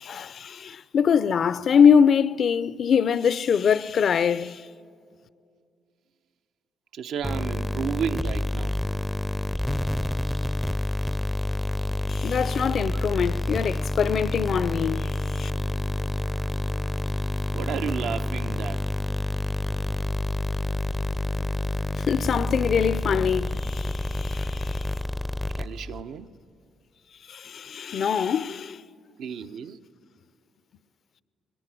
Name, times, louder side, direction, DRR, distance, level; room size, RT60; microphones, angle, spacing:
voice 1, 0.0-4.6 12.1-15.5 22.0-24.8 27.3-28.8, left 7 dB, 55° left, 0.5 m, -23 dB
voice 2, 6.9-8.7 12.7-12.8 17.5-18.8 25.5-26.3 29.2-29.8, right 7 dB, 75° right, 0.8 m, -32 dB
sound 1, 7.2-26.0, left 1 dB, 5° left, 0.5 m, -28 dB
22.5 x 20.0 x 10.0 m
cardioid pair, 90°, 0 cm